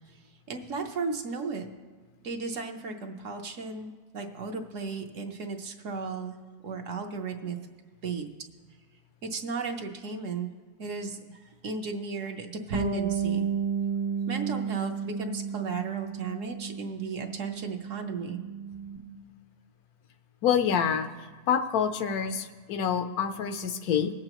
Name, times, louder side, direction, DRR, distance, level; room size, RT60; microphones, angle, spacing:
voice 1, 0.5-1.7 2.2-6.4 6.6-7.6 8.0-8.3 9.2-10.5 10.8-13.5 14.3-18.4, right 4 dB, 60° right, 3 dB, 1.1 m, -35 dB
Bass guitar, 12.7-19.0, right 6 dB, 85° right, 1.6 m, -32 dB
voice 2, 20.4-21.1 21.5-24.1, left 8 dB, 75° left, 8 dB, 1.1 m, -27 dB
20.5 x 7.7 x 3.0 m, 1.4 s
omnidirectional pair, 1.6 m